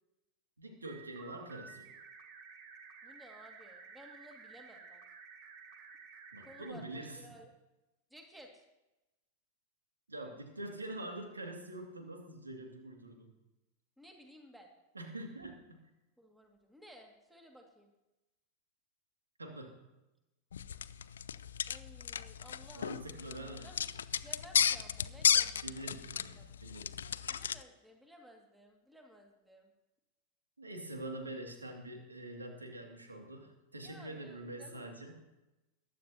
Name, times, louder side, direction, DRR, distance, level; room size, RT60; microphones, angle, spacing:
voice 1, 0.6-1.9 6.3-7.2 10.1-13.3 14.9-15.8 19.4-19.8 22.7-23.7 25.6-27.3 30.6-35.1, right 1 dB, 80° right, 2 dB, 2.4 m, -45 dB
sound 1, 0.8-6.7, right 6 dB, 40° right, 1.9 m, -53 dB
voice 2, 3.0-5.0 6.4-7.5 8.1-8.6 14.0-14.7 16.2-17.9 21.7-26.5 27.3-29.7 33.8-34.8, equal, 5° right, 2 dB, 2.2 m, -56 dB
sound 2, 20.5-27.6, left 8 dB, 65° left, 0.4 m, -34 dB
22.0 x 11.0 x 2.9 m, 0.98 s
figure-of-eight pair, 90°, 0 cm